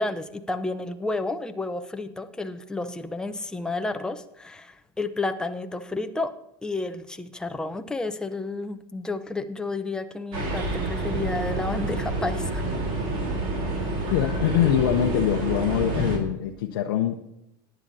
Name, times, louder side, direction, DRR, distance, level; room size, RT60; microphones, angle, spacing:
voice 1, 0.0-6.3 6.6-12.6, left 2 dB, 5° left, 7 dB, 0.7 m, -31 dB
sound 1, 10.3-16.2, right 2 dB, 55° right, 3.6 m, -28 dB
voice 2, 14.1-17.2, left 11 dB, 90° left, 3 dB, 0.8 m, -24 dB
18.5 x 10.0 x 2.8 m, 0.86 s
supercardioid pair, 125°, 12 cm